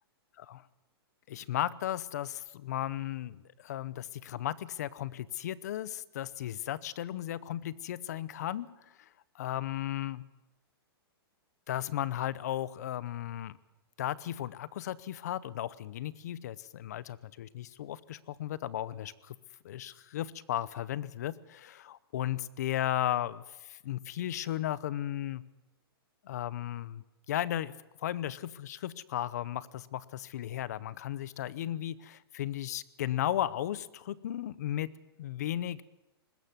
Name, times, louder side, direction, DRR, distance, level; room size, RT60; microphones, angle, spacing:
voice 1, 1.3-9.1 9.4-10.2 11.7-13.6 14.0-19.4 19.6-25.4 26.2-27.7 28.0-34.9 35.2-35.8, left 12 dB, 40° left, 20 dB, 0.7 m, -35 dB
20.5 x 15.0 x 9.6 m, 1.0 s
hypercardioid pair, 180°, 13 cm